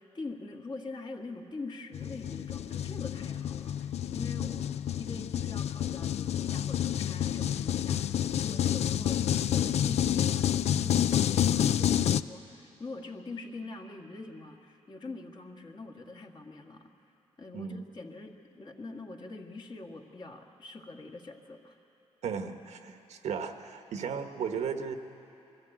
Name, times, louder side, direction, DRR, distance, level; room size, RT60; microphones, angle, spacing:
voice 1, 0.0-9.2 9.5-16.9 17.4-21.8, left 3 dB, 40° left, 1 dB, 1.8 m, -43 dB
sound 1, 1.9-12.2, left 10 dB, 70° left, 0.4 m, -29 dB
voice 2, 17.5-17.9 22.2-24.9, right 6 dB, 80° right, 7 dB, 1.2 m, -35 dB
21.5 x 14.0 x 8.9 m, 2.9 s
cardioid pair, 85°, 12 cm